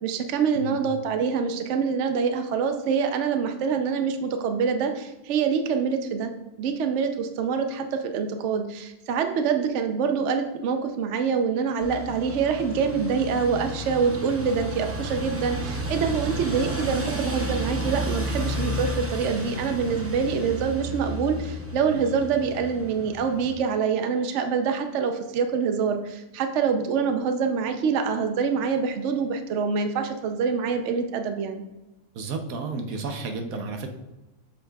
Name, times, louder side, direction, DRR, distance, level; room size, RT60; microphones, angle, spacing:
voice 1, 0.0-6.3 6.6-31.6, right 6 dB, 65° right, 6 dB, 0.9 m, -25 dB
sound 1, 11.8-23.5, equal, 20° right, 0.4 m, -32 dB
voice 2, 32.1-33.9, right 3 dB, 90° right, 5 dB, 1.3 m, -32 dB
8.2 x 6.4 x 2.3 m, 1.0 s
omnidirectional pair, 1.4 m